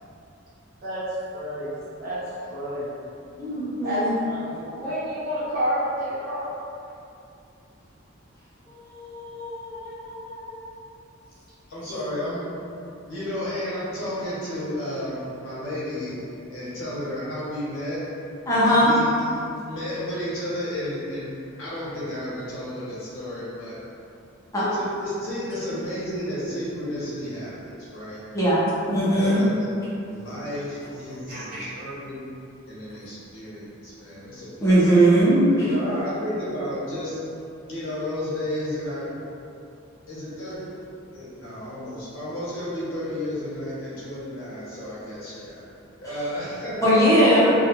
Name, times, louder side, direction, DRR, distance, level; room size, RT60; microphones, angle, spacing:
voice 1, 1.3-1.7 2.0-2.2 2.5-2.9 3.5-6.5 8.7-10.7 31.3-31.6, equal, 50° right, -11 dB, 0.9 m, -31 dB
voice 2, 3.4-4.1 18.5-18.9 24.5-24.6 28.3-28.6 28.9-29.4 34.6-35.7 46.8-47.5, right 1 dB, 15° left, -9 dB, 0.7 m, -18 dB
voice 3, 11.7-12.4 13.1-16.2 16.5-18.0 18.6-19.1 19.6-21.3 21.6-23.8 24.5-28.2 29.0-29.5 30.1-32.3 32.7-34.9 35.6-37.2 37.7-39.1 40.1-40.6 41.1-45.6 46.0-46.9 47.3-47.5, left 1 dB, 85° left, -9 dB, 0.9 m, -32 dB
2.5 x 2.4 x 2.7 m, 2.6 s
head